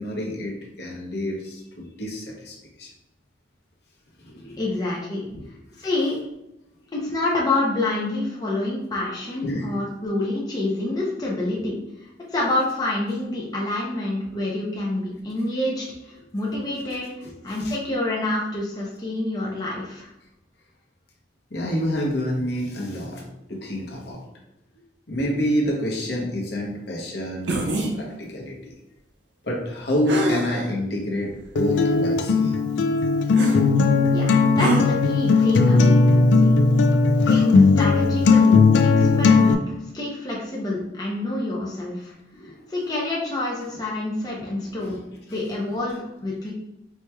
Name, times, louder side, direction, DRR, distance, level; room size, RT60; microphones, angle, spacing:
voice 1, 0.0-2.9 4.2-4.7 5.3-5.9 6.8-6.9 9.2-9.7 16.6-16.8 17.2-17.3 17.6-17.7 21.5-24.2 25.1-28.7 29.4-31.3 31.6-32.6 42.3-42.7 44.4-45.2, left 1 dB, 65° left, -2 dB, 0.9 m, -28 dB
voice 2, 4.6-5.2 5.8-6.2 6.9-11.8 12.3-17.1 17.4-20.1 34.1-36.5 37.3-38.6 38.8-42.1 42.7-45.0 45.3-46.5, left 2 dB, 20° left, -4 dB, 0.6 m, -27 dB
sound 1, 27.5-27.9 30.1-30.7 31.4-31.5 33.3-33.6 34.6-34.8, right 2 dB, 80° right, 0.6 m, -24 dB
Acoustic guitar, 31.6-39.5, left 4 dB, 80° left, 0.3 m, -17 dB
4.5 x 2.9 x 2.2 m, 0.87 s
head